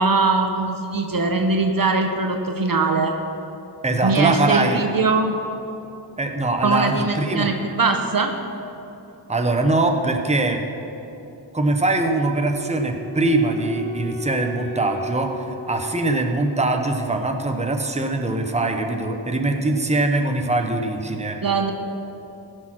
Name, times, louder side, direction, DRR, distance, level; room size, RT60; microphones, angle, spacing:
voice 1, 0.0-3.1 4.0-5.3 6.6-8.3 21.4-21.7, right 3 dB, 50° right, 4 dB, 0.9 m, -21 dB
voice 2, 3.8-4.8 6.2-7.5 9.3-10.6 11.5-21.4, right 2 dB, 15° right, 4 dB, 1.1 m, -22 dB
Wind instrument woodwind instrument, 11.9-16.9, left 1 dB, 40° left, 2.7 m, -37 dB
16.0 x 6.5 x 6.1 m, 3.0 s
wide cardioid pair, 75°, 45 cm